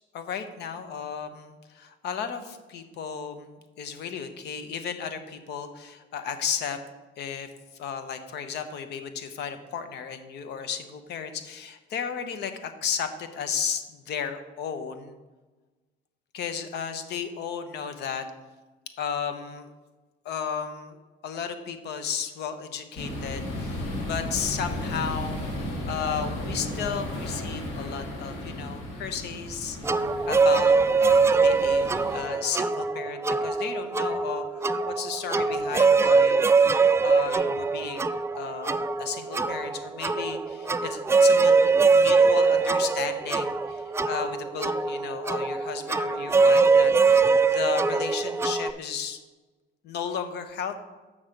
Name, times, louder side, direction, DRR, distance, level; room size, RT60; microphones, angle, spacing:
voice 1, 0.1-6.8 7.2-7.5 7.7-15.2 16.3-18.2 19.0-19.7 20.2-21.0 21.2-29.8 30.3-30.7 31.0-38.1 38.4-49.2 49.8-50.8, left 7 dB, 65° left, 9 dB, 1.0 m, -34 dB
sound 1, 23.0-32.2, left 1 dB, 80° left, 2.0 m, -34 dB
sound 2, 29.8-48.7, right 4 dB, 15° right, 0.3 m, -22 dB
7.5 x 6.2 x 5.1 m, 1.2 s
cardioid pair, 95°, 19 cm